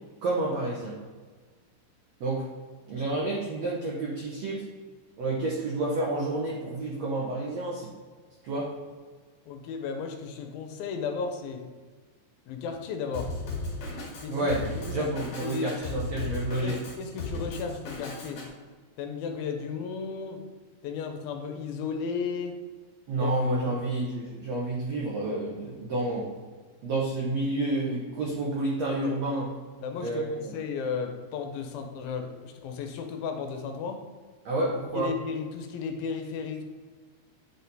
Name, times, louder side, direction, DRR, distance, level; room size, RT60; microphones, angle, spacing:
voice 1, 0.2-0.9 2.2-2.5 2.9-4.6 5.2-7.9 8.4-8.7 14.3-14.6 14.9-16.8 23.1-26.3 26.8-29.5 30.0-30.5 34.4-35.1, right 2 dB, 75° right, -3 dB, 1.5 m, -29 dB
voice 2, 9.5-11.6 12.5-13.3 14.2-14.5 14.9-15.1 15.4-15.8 16.6-18.4 19.0-20.4 20.8-22.5 23.2-23.3 23.7-23.8 29.8-34.0 35.0-36.6, left 5 dB, 80° left, 5 dB, 2.4 m, -34 dB
Drum kit, 13.1-18.5, left 2 dB, 50° left, 2.4 m, -36 dB
9.9 x 4.2 x 4.0 m, 1.5 s
omnidirectional pair, 4.5 m